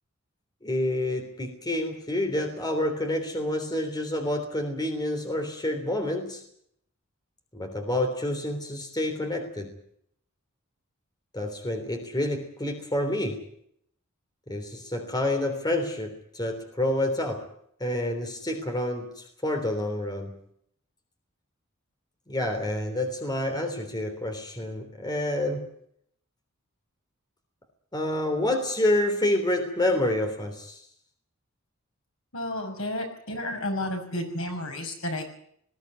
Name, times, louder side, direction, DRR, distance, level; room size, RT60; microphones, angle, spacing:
voice 1, 0.6-6.4 7.5-9.7 11.3-13.4 14.5-17.5 17.8-20.4 22.3-25.6 27.9-30.8, left 1 dB, 20° left, 5 dB, 3.4 m, -28 dB
voice 2, 32.3-35.3, left 1 dB, 75° left, 3 dB, 6.1 m, -32 dB
20.5 x 15.5 x 9.6 m, 0.69 s
head